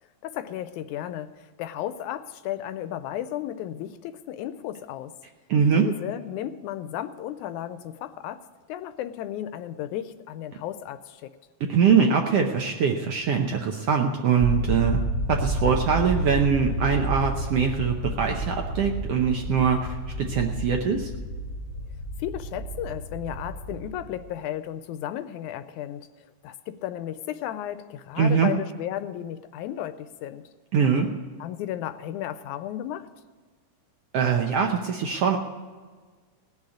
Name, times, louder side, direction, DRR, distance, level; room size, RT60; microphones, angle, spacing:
voice 1, 0.2-5.1 5.7-8.4 8.7-11.3 22.2-30.4 31.4-33.1, left 11 dB, 80° left, 12 dB, 1.9 m, -34 dB
voice 2, 5.5-5.9 11.7-15.0 15.3-21.1 28.2-28.5 30.7-31.1 34.1-35.4, right 6 dB, 70° right, 3 dB, 1.5 m, -23 dB
sound 1, 14.4-24.2, right 1 dB, 25° right, 0.9 m, -30 dB
18.0 x 6.5 x 8.4 m, 1.4 s
omnidirectional pair, 3.6 m